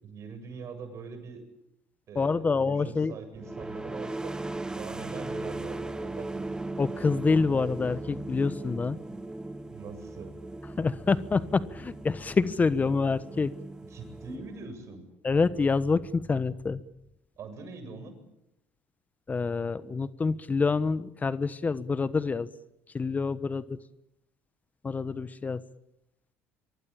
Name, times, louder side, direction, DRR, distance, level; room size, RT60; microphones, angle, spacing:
voice 1, 0.0-1.5 2.1-4.4 4.8-6.6 9.7-10.3 13.9-15.0 17.4-18.2, right 4 dB, 55° right, 8 dB, 7.8 m, -43 dB
voice 2, 2.1-3.2 6.8-9.0 10.8-13.5 15.2-16.8 19.3-22.5 22.9-23.8 24.8-25.6, left 4 dB, 25° left, 15 dB, 1.2 m, -27 dB
sound 1, 3.3-14.9, right 2 dB, 10° right, 1.5 m, -38 dB
24.0 x 23.5 x 8.9 m, 0.84 s
supercardioid pair, 80°, 6 cm